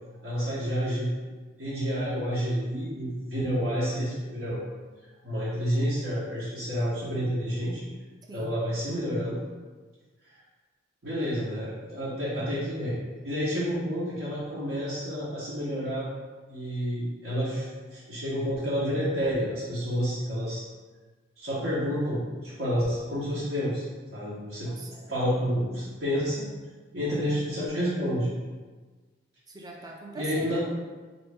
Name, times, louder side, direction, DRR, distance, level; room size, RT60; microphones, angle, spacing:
voice 1, 0.2-1.1 1.6-4.6 5.2-7.8 8.3-9.4 11.0-13.0 13.2-16.1 16.5-20.6 21.4-23.8 24.1-24.7 24.9-26.5 26.9-28.3 30.1-30.6, equal, 70° right, -11 dB, 1.0 m, -29 dB
voice 2, 8.3-8.6 24.6-25.0 27.1-27.3 29.5-30.6, right 2 dB, 20° right, 0 dB, 0.5 m, -41 dB
3.9 x 2.9 x 3.4 m, 1.4 s
head